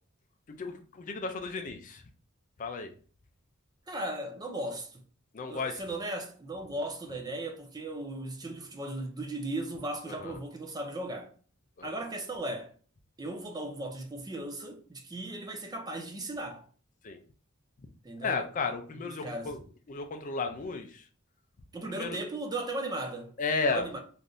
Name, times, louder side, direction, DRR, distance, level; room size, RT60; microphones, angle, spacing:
voice 1, 0.6-2.0 2.6-2.9 5.3-5.8 10.1-10.4 11.8-11.9 17.0-17.2 18.2-19.6 19.9-21.0 21.9-22.2 23.4-23.9, left 4 dB, 40° left, 0.4 m, -33 dB
voice 2, 3.9-5.0 5.5-11.3 11.8-12.7 13.2-16.7 18.0-18.4 19.2-19.6 21.7-23.3 23.7-24.0, right 1 dB, 20° right, 0.5 m, -37 dB
3.4 x 2.5 x 2.6 m
head